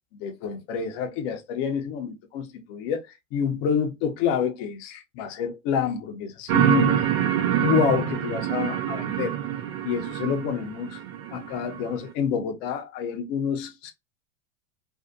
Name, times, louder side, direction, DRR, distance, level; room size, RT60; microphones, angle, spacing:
voice 1, 0.1-3.0 3.3-7.1 7.6-9.3 9.8-11.0 11.3-13.9, left 7 dB, 50° left, 0.8 m, -28 dB
sound 1, 6.5-12.0, right 11 dB, 55° right, 0.7 m, -26 dB
2.6 x 2.4 x 2.3 m
hypercardioid pair, 90°, 37 cm